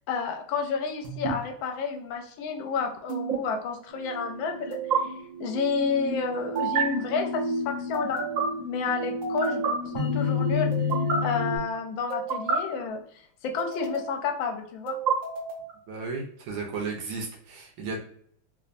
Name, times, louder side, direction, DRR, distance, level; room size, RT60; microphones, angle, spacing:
voice 1, 0.1-5.1 5.4-8.2 8.6-10.7 11.2-15.0, left 5 dB, 75° left, 4 dB, 1.3 m, -30 dB
sound 1, 1.0-1.3 3.1-3.4 4.7-5.0 6.6-6.8 7.9-8.4 9.2-9.7 10.7-11.2 12.1-12.6 13.6-14.2 14.9-15.7, right 6 dB, 60° right, 0.8 m, -29 dB
sound 2, 4.0-11.6, left 3 dB, 30° right, 1.6 m, -31 dB
voice 2, 15.9-18.0, right 4 dB, 75° right, 0 dB, 1.5 m, -34 dB
3.3 x 3.2 x 2.5 m, 0.63 s
omnidirectional pair, 2.4 m